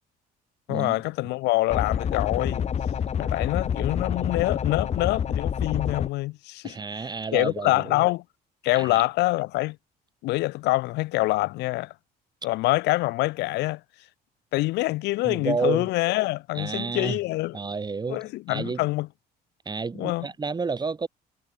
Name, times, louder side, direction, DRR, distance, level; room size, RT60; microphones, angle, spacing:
voice 1, 0.7-2.7 3.2-6.8 7.3-8.2 8.6-9.8 10.2-11.9 12.4-13.8 14.5-17.6 18.1-19.1 20.0-20.3, left 20 dB, 85° left, 1.0 m, -25 dB
sound 1, 1.7-6.1, left 8 dB, 40° left, 1.5 m, -27 dB
voice 2, 6.6-8.0 8.7-9.0 15.2-15.9 16.5-17.2 17.5-18.8 19.7-21.1, right 4 dB, 25° right, 2.2 m, -30 dB
cardioid pair, 110°, 17 cm